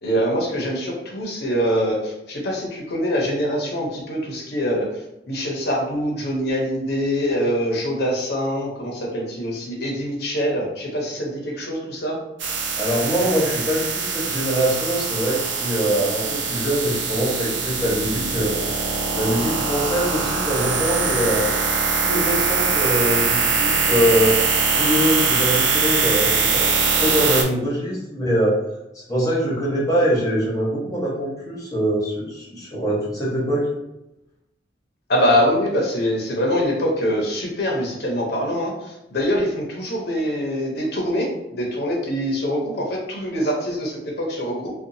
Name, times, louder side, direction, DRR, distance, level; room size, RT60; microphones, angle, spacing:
voice 1, 0.0-4.9 5.3-12.2 35.1-44.7, equal, 60° left, -2 dB, 0.7 m, -24 dB
sound 1, 12.4-27.4, right 5 dB, 85° right, 0.5 m, -22 dB
voice 2, 12.8-18.5 19.1-21.5 22.0-24.4 24.6-26.7 26.9-28.6 29.1-33.7, equal, 20° left, -6 dB, 1.1 m, -23 dB
2.6 x 2.3 x 2.7 m, 0.90 s
head